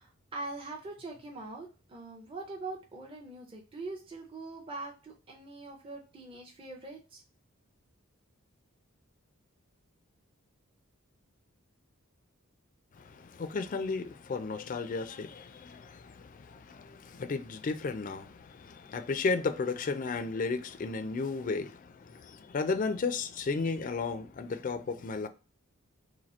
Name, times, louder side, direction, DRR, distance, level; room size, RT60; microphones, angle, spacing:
voice 1, 0.0-7.2, right 2 dB, 25° right, 0.5 m, -43 dB
voice 2, 12.9-25.3, left 4 dB, 40° left, 0.3 m, -34 dB
2.8 x 2.6 x 4.1 m
head